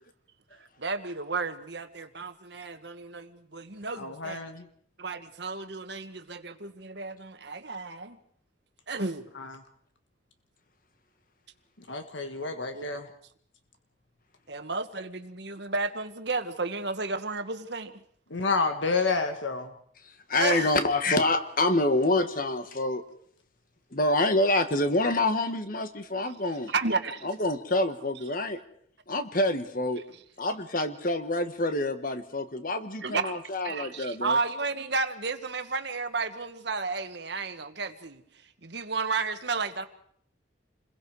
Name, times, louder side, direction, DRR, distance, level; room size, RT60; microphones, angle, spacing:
voice 1, 0.8-4.4 5.0-8.2 8.9-9.2 12.4-13.0 14.5-18.0 20.4-20.8 26.2-26.3 26.7-27.3 33.0-33.4 33.6-38.2 38.6-39.8, right 4 dB, 60° right, 8 dB, 1.6 m, -32 dB
voice 2, 3.9-4.7 9.3-9.6 11.8-13.1 18.3-19.7, left 4 dB, 70° left, 7 dB, 1.5 m, -29 dB
voice 3, 20.3-23.0 23.9-26.7 27.2-28.6 29.1-30.0 30.4-34.4, left 2 dB, 45° left, 9 dB, 1.6 m, -27 dB
29.0 x 21.5 x 4.9 m, 0.63 s
head